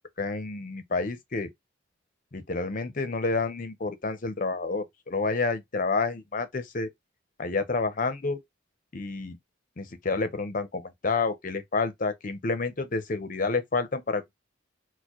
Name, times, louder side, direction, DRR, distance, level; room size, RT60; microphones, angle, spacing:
voice 1, 0.2-1.5 2.3-6.9 7.4-8.4 8.9-9.4 9.8-14.3, left 3 dB, 45° left, 0.7 m, -29 dB
4.3 x 2.2 x 3.0 m
head